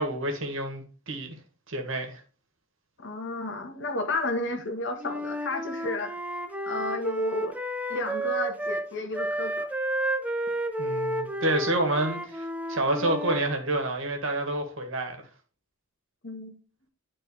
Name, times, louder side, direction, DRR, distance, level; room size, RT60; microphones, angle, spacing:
voice 1, 0.0-1.4 1.7-2.2 10.8-15.2, right 1 dB, 70° right, 1.8 m, -28 dB
voice 2, 3.0-6.1 6.6-7.6 7.9-9.7 16.2-16.5, left 2 dB, 60° left, 1.4 m, -32 dB
Wind instrument woodwind instrument, 5.0-8.9 9.1-13.5, right 1 dB, 10° right, 0.7 m, -31 dB
10.5 x 4.3 x 3.3 m
head